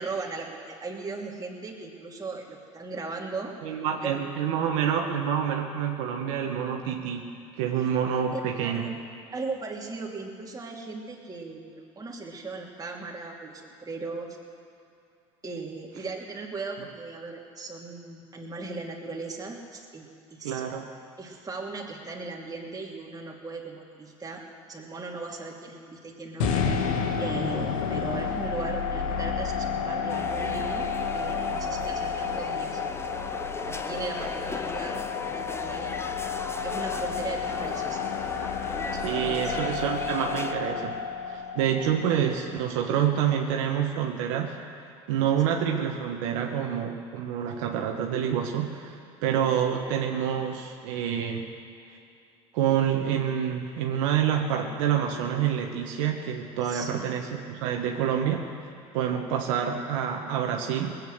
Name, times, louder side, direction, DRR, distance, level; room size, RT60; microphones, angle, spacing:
voice 1, 0.0-3.5 4.0-4.2 7.8-7.9 8.3-8.4 8.7-8.9 9.3-14.4 15.4-20.6 21.2-26.5 27.2-32.8 33.7-35.0 35.3-35.9 36.6-38.0 39.2-39.5 45.5-45.6 56.6-57.1, right 3 dB, 20° right, -1 dB, 2.8 m, -37 dB
voice 2, 3.6-7.3 7.6-8.9 20.4-20.9 39.0-41.0 41.3-44.5 45.1-48.9 49.2-51.5 52.5-58.5 58.9-61.0, right 8 dB, 75° right, 2 dB, 1.4 m, -27 dB
sound 1, 26.4-42.5, left 6 dB, 80° left, 1.8 m, -31 dB
sound 2, 30.1-40.5, left 3 dB, 15° left, 0.9 m, -37 dB
19.5 x 8.8 x 7.9 m, 2.5 s
hypercardioid pair, 80°, 17 cm